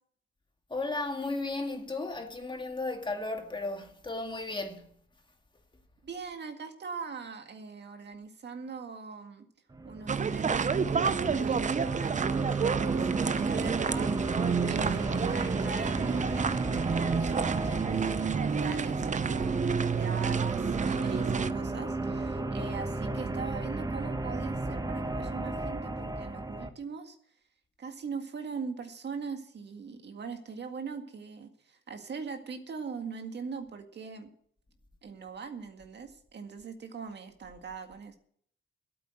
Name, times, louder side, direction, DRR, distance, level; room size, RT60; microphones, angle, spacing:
voice 1, 0.7-4.9, left 2 dB, 25° left, 2.2 m, -34 dB
voice 2, 6.0-9.5 9.8-27.2 27.8-34.3 35.0-38.2, right 5 dB, 55° right, 1.9 m, -41 dB
sound 1, 9.7-26.7, right 2 dB, 20° right, 1.3 m, -34 dB
sound 2, 10.1-21.5, right 6 dB, 35° right, 0.7 m, -29 dB
13.0 x 8.8 x 7.9 m
cardioid pair, 85°, 21 cm